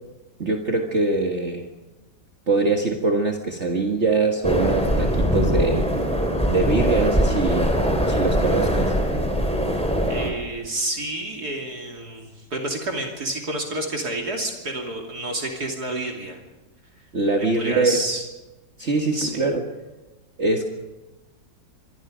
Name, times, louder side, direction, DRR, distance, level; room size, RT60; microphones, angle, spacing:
voice 1, 0.4-1.7 2.5-5.9 6.5-7.7 8.1-8.9 17.1-18.1 18.8-19.6 20.4-20.6, right 3 dB, 40° right, 2 dB, 1.9 m, -23 dB
sound 1, 4.4-10.3, equal, 5° left, 3.5 m, -22 dB
voice 2, 10.1-16.4 17.4-18.2 18.8-18.9 19.1-19.4, right 2 dB, 60° right, 1 dB, 3.3 m, -29 dB
25.5 x 23.0 x 5.1 m, 1.1 s
omnidirectional pair, 1.9 m